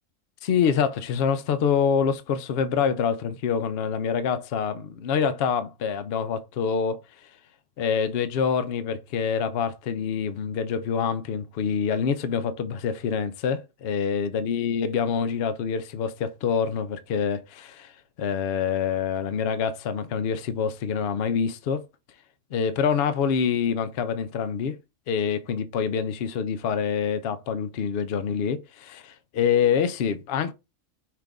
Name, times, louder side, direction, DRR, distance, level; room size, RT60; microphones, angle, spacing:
voice 1, 0.4-7.0 7.8-17.9 18.2-21.8 22.5-24.8 25.1-30.5, left 7 dB, 60° left, 0.7 m, -26 dB
5.8 x 2.5 x 3.4 m
omnidirectional pair, 1.3 m